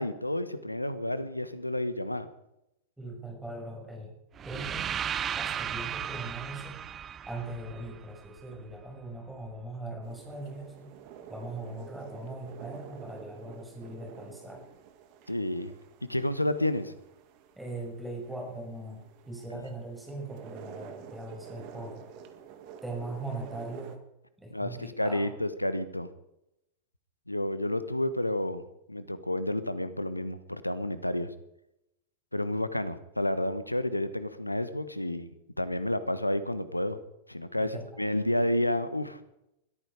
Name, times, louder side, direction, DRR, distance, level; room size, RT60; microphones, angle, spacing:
voice 1, 0.0-2.3 15.3-15.7 16.1-16.9 19.5-19.6 24.5-26.1 27.3-31.3 32.3-37.0 37.3-39.2, left 1 dB, 85° left, 13 dB, 1.2 m, -30 dB
voice 2, 3.0-4.1 4.4-5.0 5.4-6.7 7.3-10.9 11.3-14.6 17.6-22.0 22.8-24.0 24.4-25.3 37.6-38.0, right 2 dB, 5° right, 1 dB, 6.1 m, -40 dB
sound 1, 4.4-8.4, right 9 dB, 25° right, 0.7 m, -35 dB
sound 2, 10.0-24.0, right 8 dB, 45° right, 1.9 m, -49 dB
21.5 x 13.5 x 4.9 m, 0.86 s
figure-of-eight pair, 90°, 0 cm